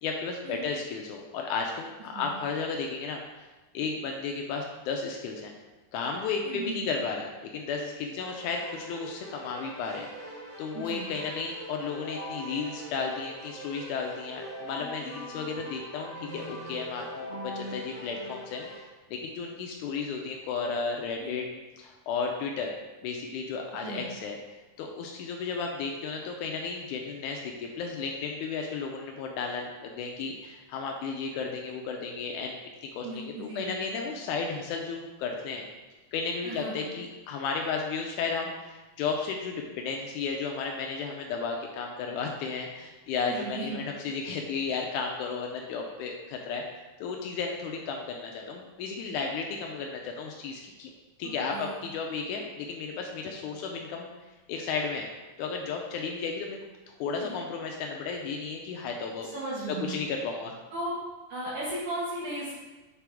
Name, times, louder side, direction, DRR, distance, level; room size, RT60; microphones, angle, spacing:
voice 1, 0.0-3.5 3.7-5.5 5.9-10.3 10.6-21.5 21.8-22.7 23.0-24.4 24.8-32.6 33.0-35.7 36.1-46.6 47.0-50.9 51.2-55.1 55.4-56.6 56.9-59.3 59.8-60.6, left 5 dB, 90° left, 2 dB, 1.7 m, -33 dB
voice 2, 6.4-6.9 10.7-11.1 21.2-21.4 23.7-24.0 33.0-33.8 36.4-36.8 43.3-43.8 51.2-51.8 57.1-57.4 59.2-60.0 60.7-60.9 61.3-62.6, right 2 dB, 65° right, -7 dB, 2.3 m, -36 dB
Keyboard (musical), 8.2-18.8, equal, 50° left, 0.9 m, -42 dB
5.9 x 4.9 x 3.5 m, 1.2 s
omnidirectional pair, 4.1 m